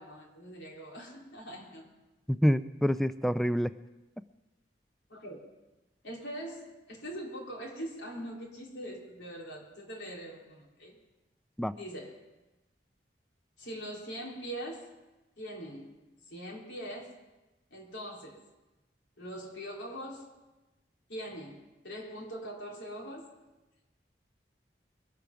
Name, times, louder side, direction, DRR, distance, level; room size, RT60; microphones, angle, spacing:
voice 1, 0.0-1.9 5.1-5.4 6.0-11.0 11.7-12.2 13.6-14.9 15.4-16.0 16.3-17.2 17.7-18.4 19.2-20.3 21.1-21.6 21.8-23.3, equal, 85° left, -2 dB, 3.5 m, -42 dB
voice 2, 2.3-3.7 11.6-11.7, equal, ahead, 13 dB, 0.4 m, -27 dB
23.0 x 8.4 x 5.9 m, 1.1 s
head